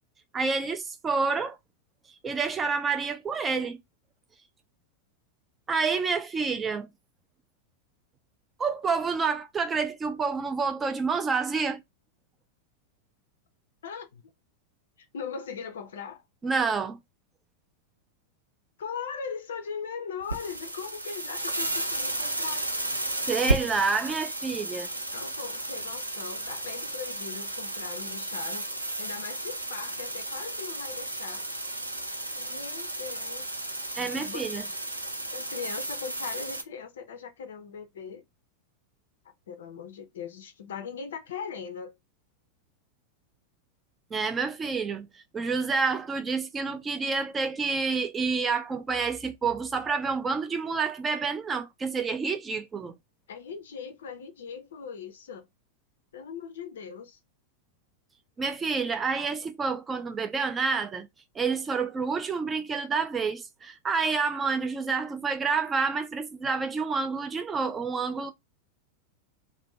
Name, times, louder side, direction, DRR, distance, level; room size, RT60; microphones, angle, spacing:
voice 1, 0.3-1.6 2.2-3.8 5.7-6.9 8.6-11.8 16.4-17.0 23.3-24.9 34.0-34.7 44.1-45.1 45.3-52.9 58.4-61.1 61.3-68.3, right 5 dB, 20° right, 0.4 m, -28 dB
voice 2, 13.8-14.2 15.0-16.2 18.8-22.7 25.1-28.7 29.0-31.5 32.4-33.5 34.1-34.4 35.3-38.2 39.5-42.0 53.3-55.5 56.1-57.2, left 6 dB, 60° left, 0.4 m, -39 dB
sound 1, 20.2-36.6, right 2 dB, 85° right, 0.5 m, -33 dB
2.5 x 2.2 x 3.1 m
figure-of-eight pair, 90°, 0 cm